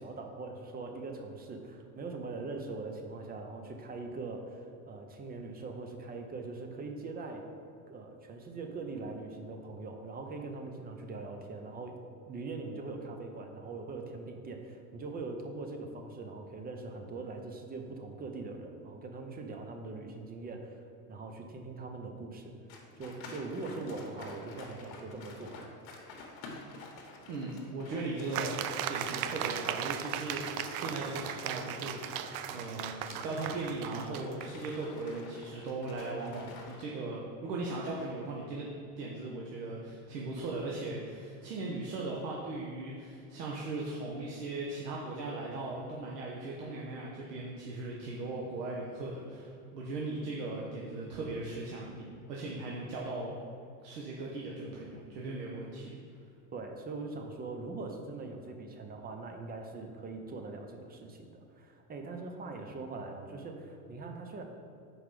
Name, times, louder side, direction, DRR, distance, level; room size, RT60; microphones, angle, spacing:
voice 1, 0.0-7.4 7.9-12.0 12.3-20.8 21.1-22.5 23.0-25.6 56.5-64.4, right 3 dB, 20° right, 4 dB, 0.7 m, -42 dB
sound 1, 22.7-36.8, left 3 dB, 50° left, 1.5 m, -49 dB
voice 2, 27.3-28.6 28.9-32.9 33.2-38.7 39.0-52.0 52.3-53.3 53.8-55.9, right 2 dB, 80° right, -3 dB, 1.2 m, -38 dB
sound 2, 28.3-34.7, right 10 dB, 65° right, 0.6 m, -37 dB
5.8 x 4.7 x 4.9 m, 2.5 s
supercardioid pair, 115°, 47 cm